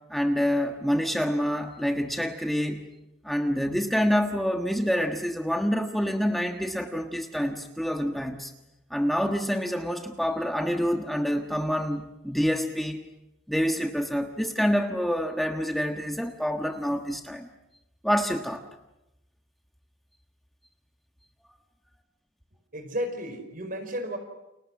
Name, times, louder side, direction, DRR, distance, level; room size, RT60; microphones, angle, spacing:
voice 1, 0.1-2.8 3.2-8.5 8.9-13.0 13.5-17.5 18.0-18.6, equal, ahead, 4 dB, 1.3 m, -27 dB
voice 2, 22.7-24.2, equal, 50° right, 7 dB, 4.9 m, -33 dB
30.0 x 28.0 x 6.3 m, 0.91 s
head